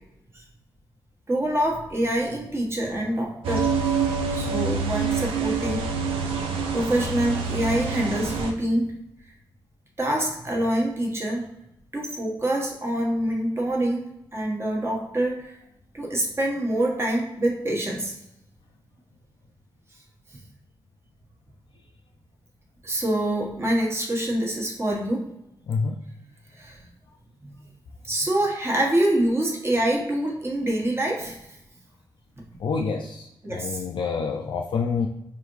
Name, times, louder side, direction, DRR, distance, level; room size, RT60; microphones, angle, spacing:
voice 1, 1.3-3.7 4.3-5.8 6.7-8.9 10.0-11.4 11.9-14.0 14.3-15.5 15.9-18.1 22.8-25.2 26.5-26.9 27.4-27.5 28.0-31.5 33.4-33.8, right 1 dB, 30° right, -2 dB, 1.2 m, -25 dB
sound 1, 3.4-8.5, right 5 dB, 90° right, 0.5 m, -26 dB
voice 2, 25.7-26.0 32.6-35.1, left 5 dB, 65° left, 1 dB, 0.4 m, -27 dB
4.7 x 2.7 x 3.1 m, 0.86 s
supercardioid pair, 50°, 9 cm